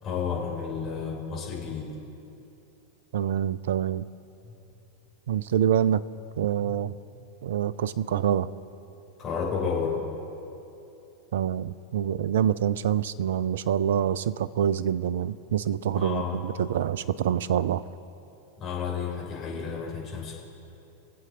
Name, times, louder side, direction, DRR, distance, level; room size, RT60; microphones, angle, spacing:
voice 1, 0.0-1.9 4.4-4.5 9.2-10.2 15.9-16.4 18.6-20.3, left 6 dB, 30° left, -3 dB, 3.3 m, -31 dB
voice 2, 3.1-4.0 5.3-6.0 6.4-6.9 7.4-8.5 11.3-17.8, right 9 dB, 60° right, 16 dB, 0.4 m, -26 dB
23.0 x 7.8 x 3.8 m, 2.8 s
figure-of-eight pair, 90°, 0 cm